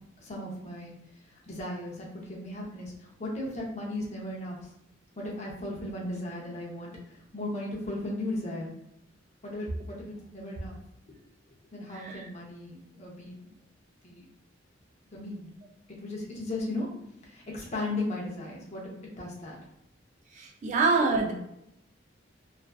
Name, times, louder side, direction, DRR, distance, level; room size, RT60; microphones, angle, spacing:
voice 1, 0.2-0.9 1.5-4.6 5.2-6.9 7.3-8.7 9.4-10.7 11.1-11.2 11.7-13.5 14.0-14.2 15.1-15.5 16.0-16.9 17.2-19.6 20.7-20.8, left 1 dB, 35° left, -2 dB, 0.6 m, -36 dB
voice 2, 20.6-21.3, right 4 dB, 40° right, 1 dB, 0.3 m, -24 dB
2.5 x 2.2 x 2.2 m, 0.80 s
head